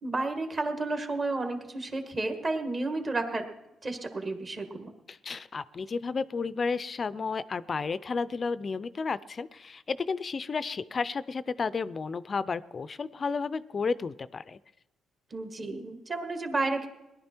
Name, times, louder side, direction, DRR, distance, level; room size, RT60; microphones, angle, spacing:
voice 1, 0.0-3.5 3.8-4.9 15.3-16.9, right 2 dB, 35° right, 6 dB, 1.7 m, -31 dB
voice 2, 5.1-14.6, left 4 dB, 40° left, 16 dB, 0.4 m, -32 dB
19.0 x 11.0 x 4.5 m, 0.98 s
cardioid pair, 90°, 0 cm